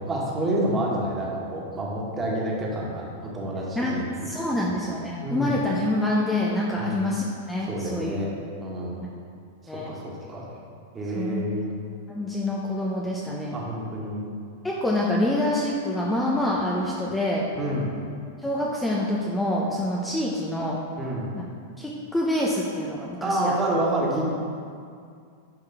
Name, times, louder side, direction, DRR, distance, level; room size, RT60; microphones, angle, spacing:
voice 1, 0.0-4.3 4.6-4.8 5.2-5.6 6.8-7.0 7.6-8.3 8.6-9.0 9.6-10.0 10.3-10.5 10.9-11.8 13.5-14.3 17.5-18.0 21.0-21.4 23.2-24.3, right 1 dB, 20° right, -4 dB, 1.9 m, -28 dB
voice 2, 3.8-8.1 9.7-9.9 11.1-11.4 12.1-13.6 14.6-17.5 18.4-20.8 21.8-23.6, left 1 dB, 10° left, -4 dB, 0.9 m, -26 dB
11.0 x 4.8 x 3.6 m, 2.3 s
figure-of-eight pair, 95°, 0 cm